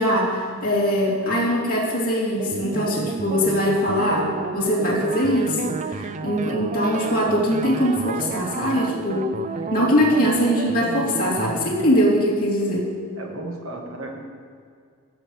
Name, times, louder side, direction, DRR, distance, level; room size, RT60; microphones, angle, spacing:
voice 1, 0.0-9.4 9.7-12.9, equal, 40° left, -6 dB, 2.6 m, -22 dB
sound 1, 2.4-12.2, right 4 dB, 35° right, 0.4 m, -32 dB
voice 2, 13.1-14.2, right 2 dB, 65° right, 1 dB, 1.7 m, -35 dB
13.5 x 5.5 x 7.3 m, 2.2 s
head